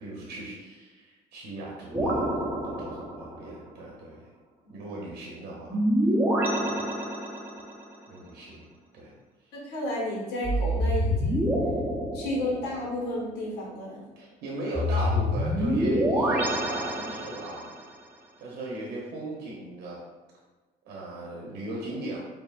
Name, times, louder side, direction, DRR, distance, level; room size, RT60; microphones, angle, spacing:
voice 1, 0.0-2.3 2.6-4.3 4.7-5.8 6.5-6.9 8.1-8.7 8.9-9.1 14.2-17.8 18.4-20.0 20.8-22.2, right 1 dB, 75° right, -4 dB, 0.9 m, -38 dB
sound 1, 1.9-3.5 5.7-7.8 10.4-12.9 14.7-17.7, equal, 10° right, 0.6 m, -27 dB
voice 2, 9.5-11.5 12.1-14.0, left 1 dB, 90° left, -4 dB, 1.4 m, -32 dB
4.7 x 2.7 x 2.5 m, 1.2 s
cardioid pair, 110°, 17 cm